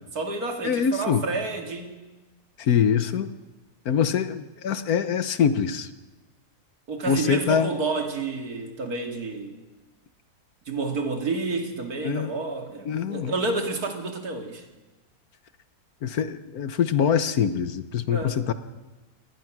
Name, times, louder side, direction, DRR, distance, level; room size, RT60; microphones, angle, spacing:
voice 1, 0.1-2.1 6.9-9.6 10.7-14.6 18.1-18.4, right 3 dB, 70° right, 4 dB, 2.7 m, -30 dB
voice 2, 0.6-1.2 2.6-3.3 3.8-5.9 7.1-7.7 12.0-12.3 12.9-13.3 16.0-18.5, left 7 dB, 70° left, 12 dB, 1.5 m, -24 dB
22.0 x 19.5 x 6.2 m, 1.2 s
omnidirectional pair, 1.7 m